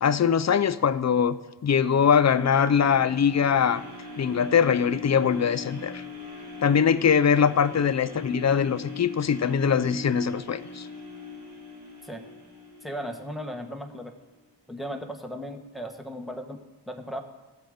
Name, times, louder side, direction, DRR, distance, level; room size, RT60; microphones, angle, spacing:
voice 1, 0.0-1.4 1.6-3.8 4.2-6.0 6.6-10.9, left 7 dB, 40° left, 14 dB, 0.6 m, -22 dB
sound 1, 1.8-13.9 14.4-14.5, left 4 dB, 70° right, 2.8 m, -41 dB
voice 2, 12.8-14.1 14.7-17.2, equal, ahead, 3 dB, 1.4 m, -36 dB
15.0 x 7.7 x 5.0 m, 1.2 s
cardioid pair, 60°, 41 cm